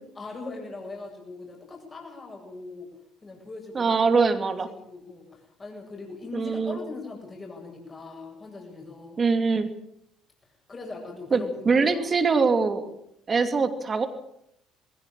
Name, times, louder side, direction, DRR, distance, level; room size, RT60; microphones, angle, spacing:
voice 1, 0.1-2.9 3.2-4.1 4.4-9.2 10.7-12.1, left 3 dB, 30° left, 0 dB, 8.0 m, -40 dB
voice 2, 3.7-4.7 6.3-6.8 9.2-9.7 11.3-12.9 13.3-14.1, right 4 dB, 35° right, 9 dB, 2.7 m, -23 dB
21.0 x 17.5 x 8.8 m, 0.73 s
figure-of-eight pair, 55°, 0 cm